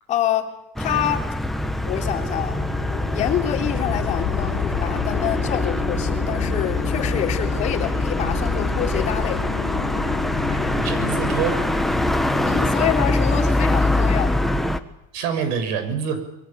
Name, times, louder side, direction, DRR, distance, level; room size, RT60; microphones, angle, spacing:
voice 1, 0.1-1.3 1.8-2.6 3.1-9.5 12.4-14.4, left 11 dB, 45° left, 3.4 m, -26 dB
sound 1, 0.8-14.8, left 1 dB, ahead, 1.3 m, -23 dB
sound 2, 1.2-12.8, left 15 dB, 85° left, 1.4 m, -31 dB
voice 2, 10.5-11.6 15.1-16.2, right 7 dB, 85° right, 6.7 m, -26 dB
27.5 x 23.0 x 8.8 m
cardioid pair, 170°, 18 cm